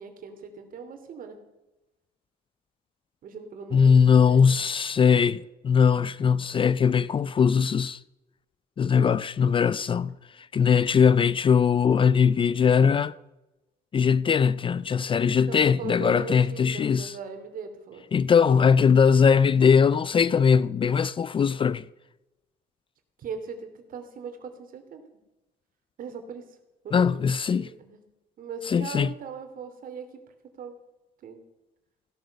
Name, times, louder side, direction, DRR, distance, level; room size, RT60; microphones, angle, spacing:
voice 1, 0.0-1.4 3.2-4.0 4.3-4.5 5.1-5.3 15.5-18.1 23.2-25.0 26.0-26.4 26.8-27.2 27.5-28.0 28.4-30.1 30.6-30.8 31.2-31.4, right 5 dB, 55° right, 3.0 m, -39 dB
voice 2, 3.7-5.4 5.6-8.0 8.8-10.2 10.5-13.1 13.9-17.2 18.1-21.8 26.9-27.7 28.6-29.1, left 6 dB, 30° left, 0.4 m, -20 dB
16.5 x 11.5 x 6.7 m
cardioid pair, 110°, 17 cm